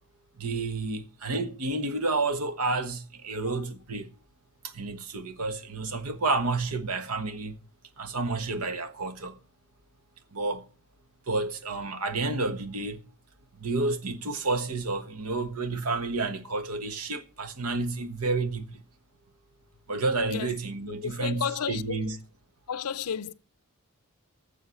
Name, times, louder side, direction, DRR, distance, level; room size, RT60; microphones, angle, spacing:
voice 1, 0.4-4.1 4.6-7.6 8.0-9.4 10.3-10.6 11.3-13.0 13.6-18.8 19.9-22.2, right 3 dB, 80° right, 1.4 m, -30 dB
voice 2, 21.0-22.2 22.7-23.3, left 7 dB, 90° left, 0.5 m, -33 dB
9.6 x 7.1 x 7.0 m
head